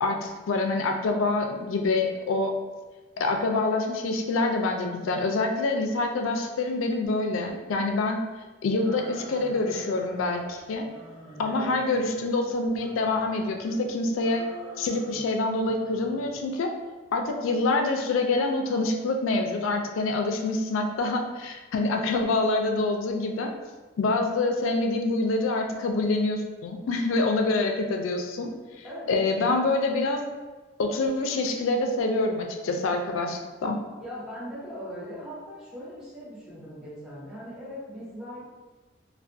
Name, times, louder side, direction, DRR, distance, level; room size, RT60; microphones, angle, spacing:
voice 1, 0.0-2.5 3.2-8.2 8.6-10.9 11.4-14.4 14.8-16.7 17.1-23.5 24.0-28.5 28.8-30.2 30.8-33.8, left 2 dB, 85° left, 4 dB, 0.3 m, -26 dB
sound 1, 8.8-10.5 10.8-12.3 12.7-13.8 14.2-15.4 15.6-16.4, equal, 30° right, 1.0 m, -46 dB
voice 2, 11.4-11.8 28.8-29.1 34.0-38.4, equal, 5° right, -10 dB, 0.6 m, -39 dB
2.3 x 2.1 x 2.5 m, 1.3 s
head